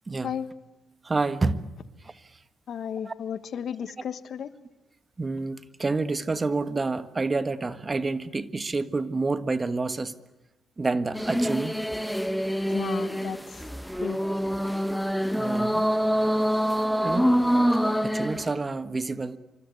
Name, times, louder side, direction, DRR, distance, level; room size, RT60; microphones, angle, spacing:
voice 1, 0.1-0.4 1.0-1.7 2.0-2.2 3.0-3.1 3.8-3.9 5.2-10.1 10.8-11.7 13.9-14.2 15.4-15.9 17.0-17.3 17.7-19.4, right 3 dB, 25° right, 12 dB, 1.5 m, -29 dB
voice 2, 2.7-4.5 12.7-13.4 14.0-14.2, left 8 dB, 60° left, 13 dB, 1.4 m, -33 dB
sound 1, 11.1-18.5, equal, ahead, 1.2 m, -25 dB
27.0 x 25.0 x 8.5 m, 1.0 s
cardioid pair, 90°, 0 cm